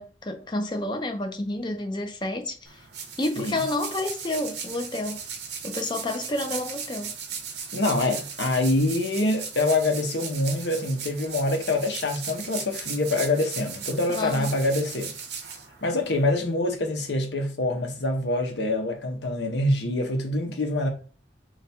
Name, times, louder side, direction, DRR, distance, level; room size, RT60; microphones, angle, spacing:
voice 1, 0.0-2.8 3.2-5.2 5.6-7.2 14.1-14.5, left 2 dB, 25° left, 0.5 m, -30 dB
sound 1, 2.7-16.2, right 6 dB, 70° right, 0.8 m, -37 dB
voice 2, 7.7-15.1 15.8-20.9, left 2 dB, 70° left, 0.8 m, -25 dB
3.4 x 2.5 x 4.2 m
head